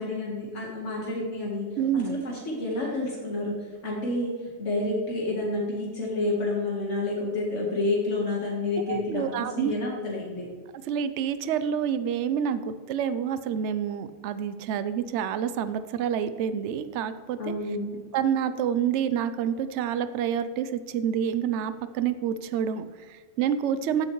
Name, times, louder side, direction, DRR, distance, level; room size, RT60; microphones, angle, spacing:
voice 1, 0.0-1.7 1.9-10.5 17.4-18.0, left 2 dB, 80° left, -3 dB, 1.9 m, -29 dB
voice 2, 1.8-2.2 8.9-9.7 10.9-17.5 18.1-24.1, right 8 dB, 75° right, 12 dB, 0.9 m, -28 dB
14.5 x 7.7 x 3.1 m, 1.5 s
omnidirectional pair, 1.2 m